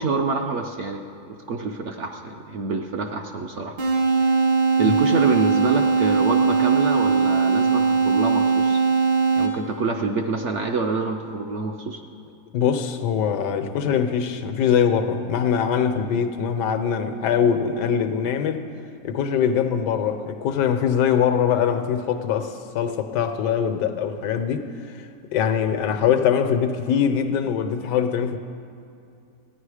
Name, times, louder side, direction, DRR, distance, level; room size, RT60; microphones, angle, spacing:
voice 1, 0.0-3.8 4.2-4.3 4.8-8.8 9.4-12.0, right 4 dB, 65° right, 0.7 m, -26 dB
sound 1, 3.8-9.8, right 4 dB, 90° right, 2.0 m, -20 dB
voice 2, 12.5-18.6 19.0-28.4, left 7 dB, 90° left, 1.4 m, -22 dB
15.0 x 9.9 x 4.9 m
omnidirectional pair, 1.8 m